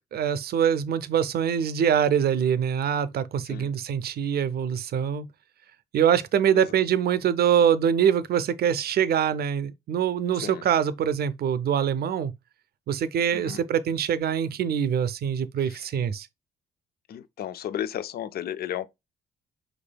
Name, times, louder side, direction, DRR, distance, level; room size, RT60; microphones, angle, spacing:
voice 1, 0.1-5.3 5.9-12.3 12.9-16.3, right 8 dB, 55° right, 0.5 m, -24 dB
voice 2, 17.1-18.9, left 10 dB, 55° left, 0.4 m, -33 dB
4.9 x 3.2 x 2.2 m
supercardioid pair, 55°, 19 cm